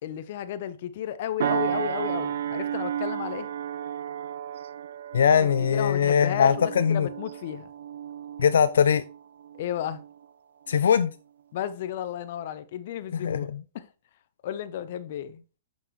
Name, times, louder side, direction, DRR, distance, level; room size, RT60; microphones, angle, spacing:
voice 1, 0.0-3.5 5.4-7.7 9.5-10.0 11.5-13.9 14.4-15.4, left 10 dB, 55° left, 0.7 m, -33 dB
sound 1, 1.4-10.2 10.7-10.9, right 9 dB, 70° right, 0.5 m, -33 dB
voice 2, 5.1-7.1 8.4-9.0 10.7-11.1 13.1-13.6, left 7 dB, 80° left, 0.4 m, -21 dB
7.2 x 5.3 x 3.1 m
hypercardioid pair, 145°, 0 cm